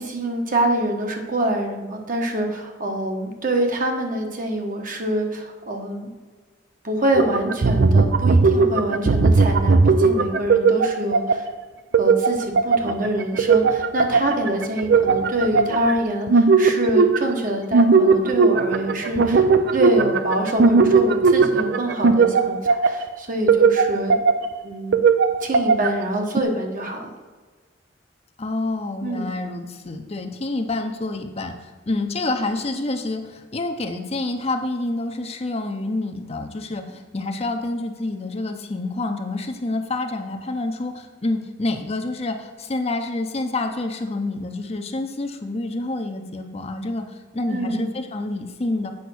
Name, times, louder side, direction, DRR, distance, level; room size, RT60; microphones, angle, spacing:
voice 1, 0.0-6.1 6.8-11.4 12.0-19.4 19.7-24.2 24.6-25.0 25.4-27.1 29.0-29.3 47.5-47.9, right 1 dB, 50° right, 3 dB, 1.3 m, -25 dB
sound 1, 7.1-11.5 11.9-15.9 16.3-17.4 17.7-23.0 23.5-24.6 24.9-26.0 26.4-26.5, right 4 dB, 65° right, 0.5 m, -18 dB
voice 2, 28.4-48.9, left 2 dB, 35° left, 5 dB, 0.7 m, -28 dB
8.5 x 5.2 x 6.2 m, 1.4 s
head